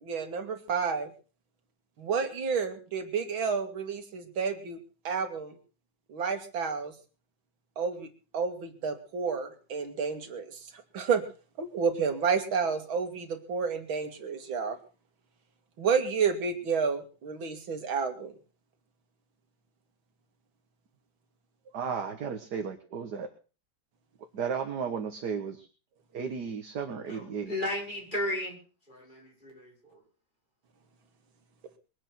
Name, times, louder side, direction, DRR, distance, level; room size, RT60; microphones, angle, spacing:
voice 1, 0.0-1.1 2.0-4.8 5.0-5.5 6.1-6.9 7.8-10.6 10.9-11.2 11.6-14.8 15.8-18.3, right 6 dB, 90° right, 7 dB, 2.8 m, -30 dB
voice 2, 21.7-23.3 24.3-25.7 26.1-27.5, right 6 dB, 55° right, 5 dB, 1.9 m, -34 dB
voice 3, 27.1-28.6 28.9-29.7, left 1 dB, 25° left, -1 dB, 6.4 m, -34 dB
22.0 x 9.0 x 6.0 m, 0.37 s
omnidirectional pair, 2.1 m